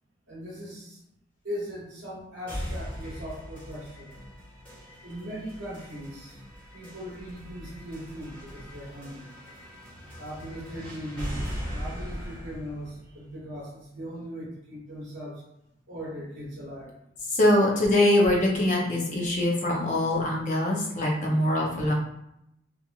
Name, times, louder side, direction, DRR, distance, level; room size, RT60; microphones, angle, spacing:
voice 1, 0.3-1.0 1.4-4.1 5.0-6.4 6.7-9.3 10.2-11.4 11.7-15.4 15.9-16.9, equal, 85° right, -7 dB, 0.9 m, -39 dB
sound 1, 2.5-14.4, equal, 5° left, 1.0 m, -40 dB
voice 2, 17.3-21.9, left 1 dB, 40° left, -2 dB, 0.6 m, -23 dB
2.9 x 2.4 x 2.3 m, 0.81 s
head